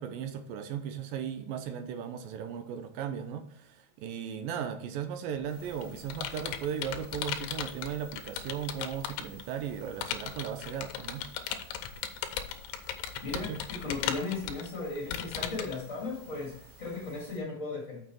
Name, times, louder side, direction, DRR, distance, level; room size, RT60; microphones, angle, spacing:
voice 1, 0.0-11.3 13.3-13.6, right 8 dB, 80° right, 7 dB, 2.1 m, -37 dB
Computer keyboard, 5.4-9.4 10.0-15.8, left 10 dB, 85° left, 2.7 m, -37 dB
sound 1, 5.5-17.4, right 2 dB, 50° right, 2.2 m, -53 dB
voice 2, 13.2-18.1, left 3 dB, 30° left, -4 dB, 1.5 m, -36 dB
6.9 x 6.3 x 4.5 m, 0.71 s
omnidirectional pair, 4.8 m